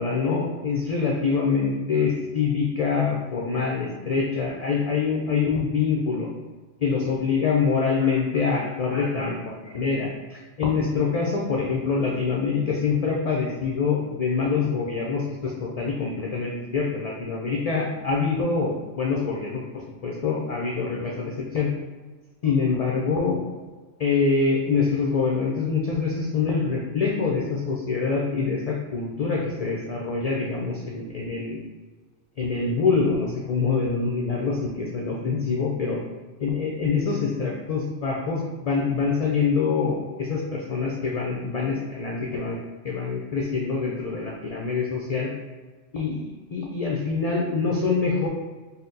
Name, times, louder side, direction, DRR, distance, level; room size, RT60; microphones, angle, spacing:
voice 1, 0.0-6.3 6.8-21.7 22.4-23.4 24.0-31.6 32.4-36.0 36.4-42.6 42.8-45.3 45.9-48.3, left 5 dB, 55° left, -2 dB, 0.4 m, -25 dB
4.1 x 2.1 x 3.8 m, 1.3 s
omnidirectional pair, 1.2 m